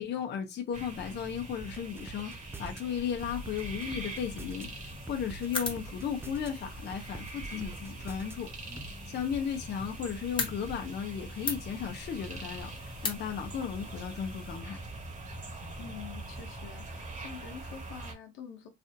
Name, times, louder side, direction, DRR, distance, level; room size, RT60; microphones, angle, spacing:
voice 1, 0.0-4.7 5.1-8.5 9.1-14.8, left 8 dB, 60° left, 0.7 m, -35 dB
sound 1, 0.7-18.1, right 2 dB, 40° right, 1.3 m, -43 dB
sound 2, 1.6-2.8 3.2-4.7 5.1-6.5 6.9-8.3 8.8-8.9, right 4 dB, 10° right, 0.4 m, -46 dB
sound 3, 3.2-14.6, left 3 dB, 25° left, 1.0 m, -42 dB
voice 2, 15.8-18.7, left 7 dB, 90° left, 0.9 m, -46 dB
3.3 x 2.5 x 2.6 m
cardioid pair, 90°, 20 cm